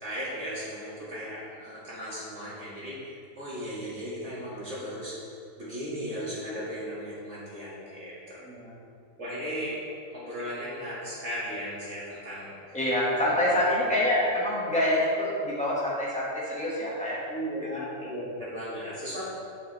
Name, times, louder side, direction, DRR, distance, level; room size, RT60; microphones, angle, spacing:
voice 1, 0.0-5.2 5.6-8.4 9.2-9.8 10.1-12.8 13.4-13.5 17.3-19.2, equal, 45° right, -8 dB, 2.6 m, -36 dB
voice 2, 12.7-17.2 17.7-17.8, left 1 dB, 5° left, -7 dB, 1.9 m, -26 dB
8.6 x 7.6 x 3.5 m, 2.4 s
omnidirectional pair, 1.6 m